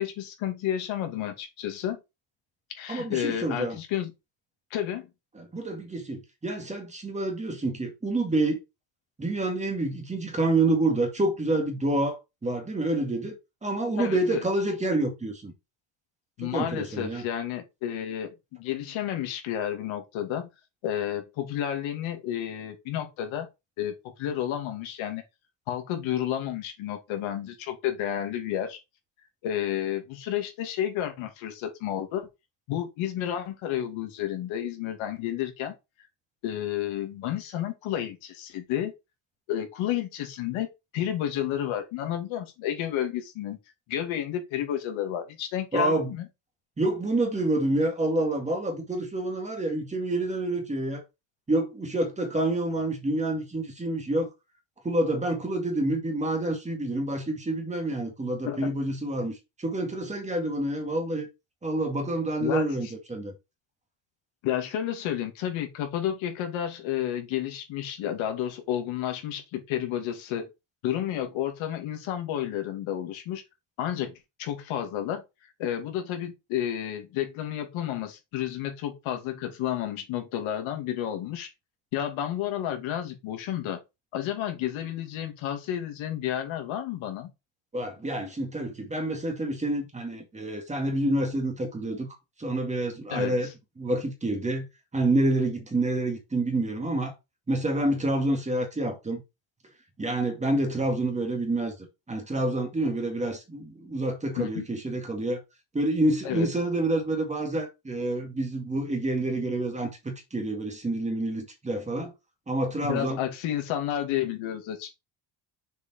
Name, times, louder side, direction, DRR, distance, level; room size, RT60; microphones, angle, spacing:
voice 1, 0.0-2.0 2.8-4.1 4.7-5.1 14.0-14.4 16.4-20.5 20.8-23.5 23.8-25.2 25.7-28.8 29.4-32.3 32.7-35.7 36.4-38.9 39.5-40.7 40.9-43.6 43.9-46.3 58.5-58.7 62.4-62.7 64.4-70.5 70.8-73.4 73.8-74.1 74.4-75.2 75.6-81.5 81.9-83.8 84.1-87.3 93.1-93.4 104.4-104.7 106.2-106.5 112.8-115.0, left 11 dB, 85° left, 2.4 m, -31 dB
voice 2, 2.9-3.8 5.3-8.6 9.2-13.3 13.6-15.5 16.4-17.2 45.7-46.1 46.8-51.0 51.5-54.3 54.8-61.3 61.6-63.3 87.7-92.1 92.4-93.5 93.8-94.7 94.9-97.1 97.5-99.2 100.0-101.7 102.1-105.4 105.7-112.1 112.5-113.2, right 2 dB, 15° right, 2.0 m, -28 dB
6.6 x 5.1 x 4.3 m
cardioid pair, 155°, 46 cm